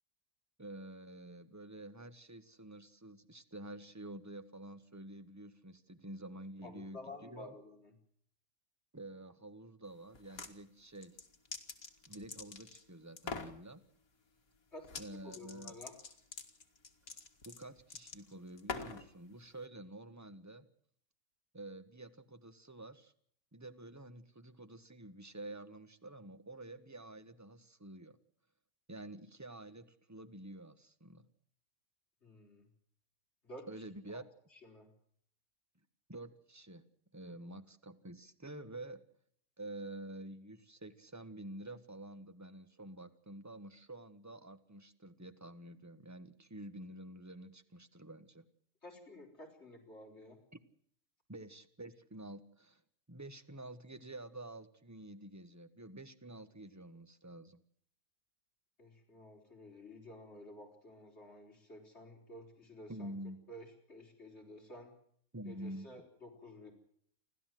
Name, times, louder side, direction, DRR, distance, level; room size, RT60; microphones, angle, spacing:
voice 1, 0.6-7.5 8.9-11.2 12.1-13.8 15.0-15.8 17.4-20.6 21.5-23.1 23.5-28.2 28.9-31.2 33.7-34.2 36.1-36.8 37.1-39.0 39.6-48.4 51.3-52.8 53.1-57.6 62.9-63.4 65.3-65.9, right 1 dB, 10° right, 10 dB, 1.3 m, -49 dB
voice 2, 6.6-7.9 14.7-15.9 32.2-32.7 33.4-33.7 34.1-34.2 34.5-34.9 48.8-50.4 58.8-63.1 63.5-64.9 65.5-66.7, left 1 dB, 45° left, 1 dB, 4.7 m, -52 dB
sound 1, 10.1-10.5 11.0-12.8 13.2-13.6 14.8-15.1 15.3-19.1, left 4 dB, 70° left, 2.5 m, -44 dB
29.5 x 12.5 x 7.7 m, 0.64 s
omnidirectional pair, 1.5 m